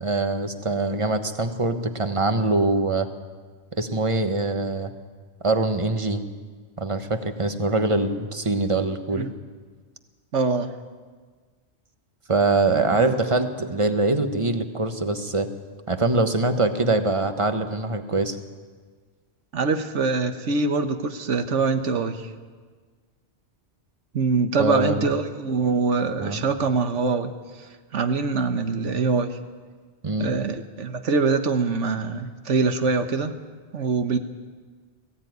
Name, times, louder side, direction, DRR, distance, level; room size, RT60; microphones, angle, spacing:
voice 1, 0.0-3.1 3.7-4.9 5.4-6.2 6.8-9.3 12.3-15.5 15.9-18.4 24.6-25.1 26.2-26.4 30.0-30.3, right 2 dB, 25° right, 8 dB, 1.3 m, -23 dB
voice 2, 10.3-10.7 12.9-13.4 19.5-22.3 24.1-27.3 27.9-29.4 30.2-33.3 33.7-34.2, right 4 dB, 85° right, 8 dB, 1.5 m, -24 dB
20.0 x 15.5 x 9.4 m, 1.5 s
omnidirectional pair, 1.2 m